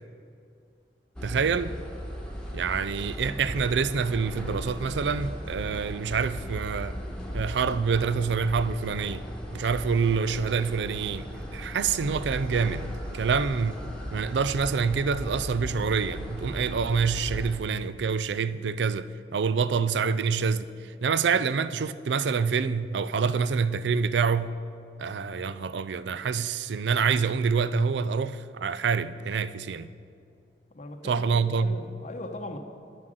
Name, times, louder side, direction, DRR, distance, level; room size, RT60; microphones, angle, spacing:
sound 1, 1.2-17.6, equal, 5° left, 1.3 m, -37 dB
voice 1, 1.2-1.7 2.5-7.0 7.3-9.2 9.5-11.3 11.5-12.9 13.1-13.8 14.1-24.5 25.0-29.9 31.0-31.8, right 5 dB, 70° right, 0.4 m, -26 dB
voice 2, 30.7-32.6, left 1 dB, 40° left, 0.8 m, -39 dB
10.0 x 7.5 x 7.7 m
head